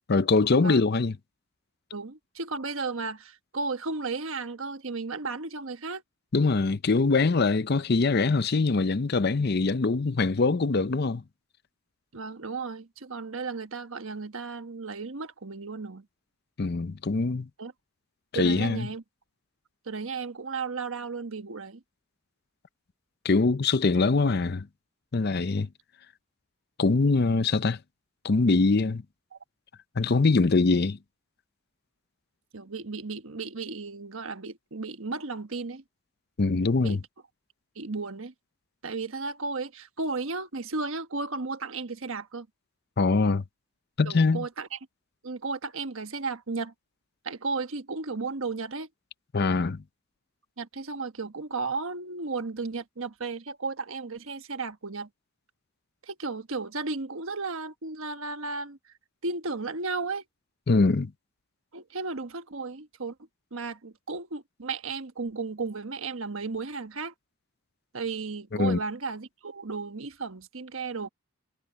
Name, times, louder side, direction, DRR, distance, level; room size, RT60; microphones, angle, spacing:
voice 1, 0.1-1.1 6.3-11.2 16.6-17.5 18.3-18.9 23.2-24.7 25.1-25.7 26.8-27.8 28.2-29.0 30.0-31.0 36.4-37.0 43.0-43.4 44.0-44.4 49.3-49.8 60.7-61.1 68.6-68.8, left 3 dB, 45° left, 0.6 m, -23 dB
voice 2, 1.9-6.0 12.1-16.1 17.6-17.7 18.3-19.0 19.8-21.8 29.3-29.4 32.5-35.8 36.8-37.0 37.7-38.3 38.8-42.5 44.0-44.8 45.2-46.7 47.2-48.9 50.6-55.1 56.0-58.9 59.2-60.2 61.7-63.1 63.5-67.1 67.9-71.1, right 4 dB, 70° right, 1.3 m, -34 dB
head